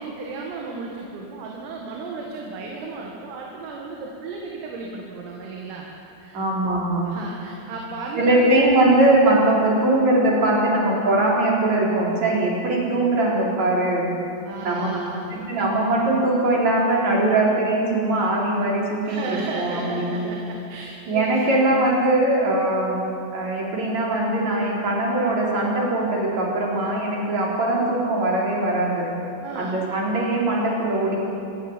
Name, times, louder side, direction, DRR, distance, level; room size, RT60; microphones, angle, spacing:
voice 1, 0.0-5.9 6.2-6.4 7.1-8.6 14.4-15.4 19.1-21.4 29.4-29.8, right 4 dB, 85° right, -1 dB, 4.6 m, -34 dB
voice 2, 6.3-7.0 8.2-14.0 14.6-14.9 15.3-20.2 21.1-23.0 23.3-29.1 29.6-31.2, right 2 dB, 35° right, -3 dB, 4.9 m, -21 dB
26.5 x 13.0 x 9.1 m, 2.6 s
omnidirectional pair, 5.9 m